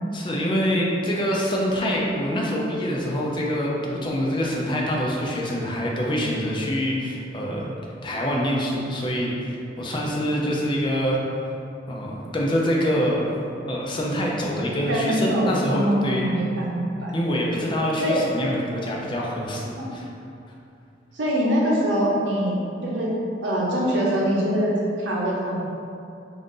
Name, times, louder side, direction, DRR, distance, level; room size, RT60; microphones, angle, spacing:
voice 1, 0.1-7.7 8.0-11.2 11.9-13.4 13.7-16.3 17.1-20.1, equal, 25° left, -3 dB, 0.5 m, -25 dB
voice 2, 14.9-17.1 18.0-18.2 19.7-19.9 21.1-23.1 23.4-25.6, equal, 85° right, -4 dB, 0.8 m, -23 dB
3.8 x 2.6 x 3.6 m, 2.6 s
head